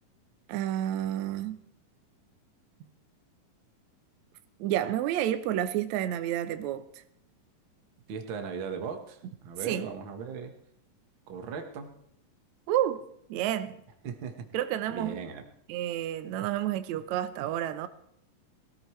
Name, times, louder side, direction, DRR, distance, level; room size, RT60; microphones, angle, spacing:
voice 1, 0.5-1.6 2.8-2.9 4.6-7.0 9.6-9.9 12.7-13.0 13.3-13.7 14.5-15.2 15.7-17.9, right 12 dB, 70° right, 1.8 m, -30 dB
voice 2, 8.1-10.5 11.3-11.9 14.0-14.5 14.9-15.4, right 6 dB, 55° right, 1.3 m, -38 dB
22.0 x 14.5 x 3.2 m
omnidirectional pair, 4.1 m